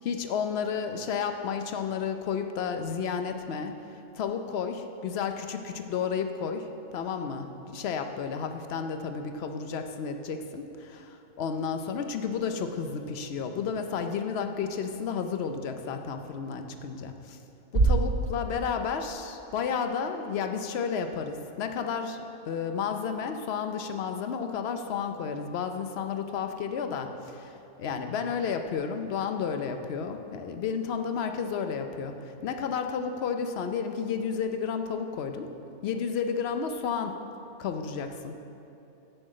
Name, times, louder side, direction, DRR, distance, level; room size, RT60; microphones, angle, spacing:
voice 1, 0.0-3.8 4.1-17.4 17.7-35.5 35.8-37.2 37.6-38.4, left 6 dB, 60° left, 7 dB, 0.9 m, -32 dB
Bass drum, 17.7-19.4, right 3 dB, 70° right, 1.8 m, -27 dB
7.6 x 6.7 x 7.5 m, 2.8 s
omnidirectional pair, 1.3 m